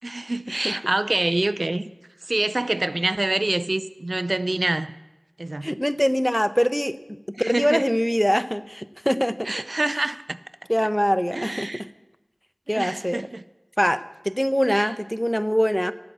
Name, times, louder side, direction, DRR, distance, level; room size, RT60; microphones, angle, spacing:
voice 1, 0.0-1.9 2.3-5.0 5.4-5.7 7.4-7.8 9.4-10.4 11.3-11.8 12.7-13.4 14.7-14.9, right 2 dB, 70° right, 0.5 m, -26 dB
voice 2, 5.6-9.5 10.7-11.9 12.7-13.2 13.8-14.0 14.2-15.9, equal, 5° left, 0.7 m, -23 dB
16.5 x 8.5 x 8.1 m
wide cardioid pair, 40°, 0 cm